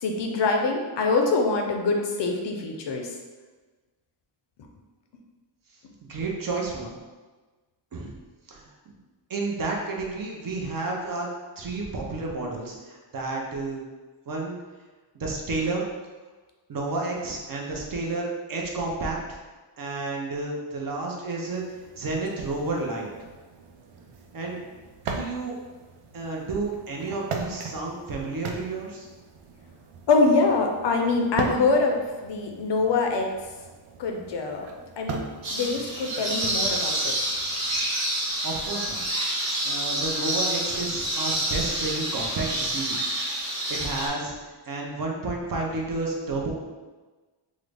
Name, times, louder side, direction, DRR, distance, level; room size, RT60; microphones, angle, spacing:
voice 1, 0.0-3.1 30.1-33.3 34.0-34.7 35.0-35.2 35.5-37.1, left 3 dB, 60° left, 2 dB, 0.5 m, -24 dB
voice 2, 6.1-7.0 7.9-8.1 8.5-9.0 9.3-11.3 11.6-13.8 14.3-14.6 15.1-15.8 16.7-19.4 19.8-21.6 22.0-23.1 24.3-24.6 25.0-25.5 26.1-29.1 38.4-39.0 39.4-43.0 43.7-44.3 44.7-46.5, right 3 dB, 45° right, -1 dB, 0.5 m, -31 dB
sound 1, 21.4-37.9, right 4 dB, 90° right, 0.6 m, -40 dB
sound 2, 35.4-44.1, right 1 dB, 65° right, 1.2 m, -28 dB
3.7 x 2.0 x 3.3 m, 1.3 s
wide cardioid pair, 175°, 49 cm